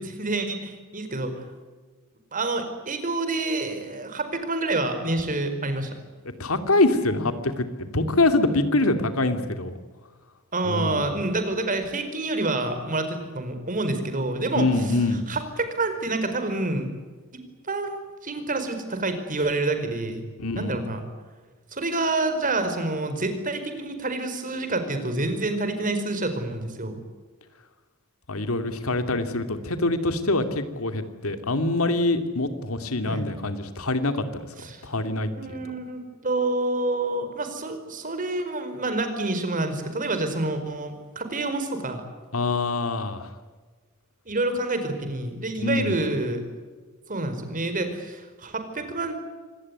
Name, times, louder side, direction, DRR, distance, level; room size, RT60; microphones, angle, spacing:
voice 1, 0.0-1.4 2.3-5.9 10.5-14.7 15.3-16.9 17.3-20.3 20.5-21.0 21.7-27.0 33.0-33.2 34.6-34.8 35.3-42.0 44.2-46.4 47.1-49.1, right 2 dB, 40° right, 9 dB, 4.8 m, -28 dB
voice 2, 6.4-9.7 10.6-11.1 14.5-15.2 20.4-20.8 28.3-34.5 34.8-35.6 42.3-43.3 45.6-46.0, left 2 dB, 80° left, 8 dB, 2.7 m, -25 dB
26.5 x 18.5 x 9.6 m, 1.4 s
head